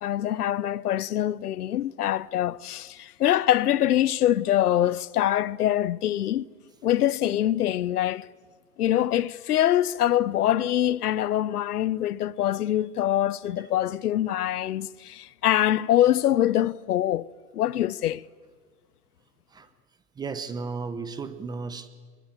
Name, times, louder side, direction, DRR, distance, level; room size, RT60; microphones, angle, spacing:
voice 1, 0.0-6.5 6.8-8.3 8.8-18.2, left 12 dB, 75° left, 1.0 m, -24 dB
voice 2, 20.2-21.9, right 4 dB, 10° right, 0.9 m, -34 dB
24.5 x 22.5 x 9.9 m
hypercardioid pair, 150°, 46 cm